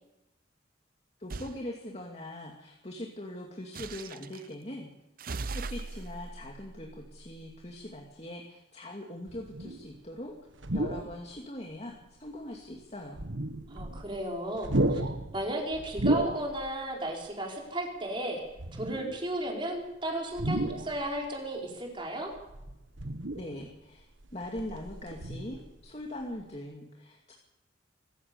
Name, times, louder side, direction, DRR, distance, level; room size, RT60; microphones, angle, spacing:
voice 1, 1.2-4.9 5.5-10.4 10.7-13.2 23.3-24.1 24.3-27.3, left 1 dB, 35° left, 0 dB, 2.5 m, -41 dB
sound 1, 1.3-1.6 3.7-4.5 5.2-7.8, right 3 dB, 45° right, 0.7 m, -40 dB
sound 2, 9.3-9.9 10.5-11.3 11.9-12.0 13.0-14.2 14.5-16.8 17.1-17.3 18.5-19.3 20.3-21.3 22.3-23.7 24.2-25.9 26.2-26.4, right 1 dB, 75° right, 1.5 m, -33 dB
voice 2, 13.7-15.0 15.3-18.4 18.7-22.3, right 1 dB, 25° right, 0 dB, 4.8 m, -34 dB
25.0 x 15.5 x 7.0 m, 0.92 s
head